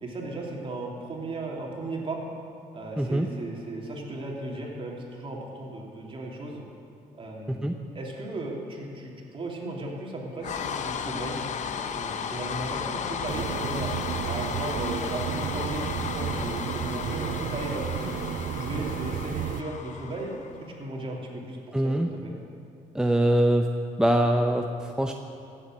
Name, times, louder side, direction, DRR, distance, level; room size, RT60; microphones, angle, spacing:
voice 1, 0.0-2.2 2.7-6.6 7.2-11.4 11.9-13.9 14.2-18.1 18.4-20.4 20.8-22.3, right 2 dB, 35° right, -1 dB, 2.8 m, -36 dB
voice 2, 3.0-3.3 7.5-7.7 21.7-22.1 22.9-23.7 24.0-25.1, right 1 dB, 5° right, 4 dB, 0.7 m, -23 dB
sound 1, 10.4-20.7, left 7 dB, 55° left, 0.8 m, -34 dB
sound 2, 13.3-19.6, right 10 dB, 65° right, 0.4 m, -33 dB
15.5 x 7.4 x 7.8 m, 2.6 s
cardioid pair, 95°, 15 cm